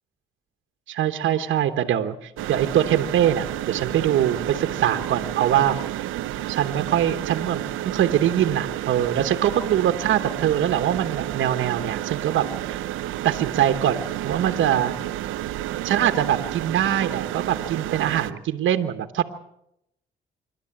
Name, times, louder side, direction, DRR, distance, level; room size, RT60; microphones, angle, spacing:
voice 1, 0.9-5.8 6.5-12.8 13.2-14.9 15.8-19.3, right 10 dB, 75° right, 7 dB, 1.2 m, -23 dB
sound 1, 2.4-18.3, right 13 dB, 90° right, 0.8 m, -31 dB
26.0 x 11.5 x 8.8 m, 0.80 s
cardioid pair, 90°, 20 cm